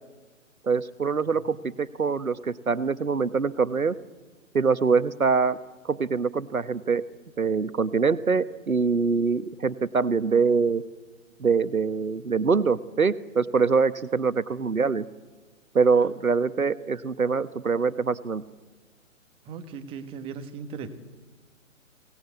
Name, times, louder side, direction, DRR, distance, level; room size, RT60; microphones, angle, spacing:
voice 1, 0.6-3.9 4.5-5.6 5.8-7.0 7.4-10.8 11.4-15.1 15.7-18.4, right 5 dB, 85° right, 14 dB, 1.2 m, -24 dB
voice 2, 19.4-20.9, right 6 dB, 15° right, 8 dB, 1.4 m, -37 dB
25.0 x 18.5 x 8.2 m, 1.3 s
figure-of-eight pair, 135°, 41 cm